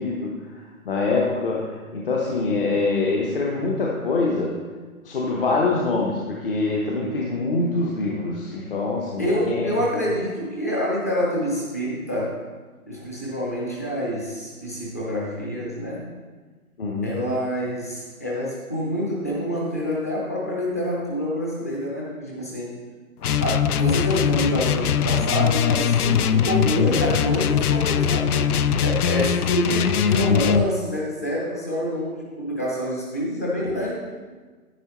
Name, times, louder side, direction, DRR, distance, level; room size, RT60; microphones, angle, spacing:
voice 1, 0.0-4.6 5.0-9.7 16.8-17.2, left 3 dB, 40° left, -2 dB, 1.0 m, -25 dB
voice 2, 9.2-12.4 12.9-16.1 17.0-22.7 23.4-28.5 28.8-33.9, equal, 10° left, -4 dB, 0.6 m, -27 dB
sound 1, 23.2-30.7, left 8 dB, 80° left, 0.6 m, -21 dB
9.9 x 9.0 x 3.1 m, 1.4 s
hypercardioid pair, 155°, 45 cm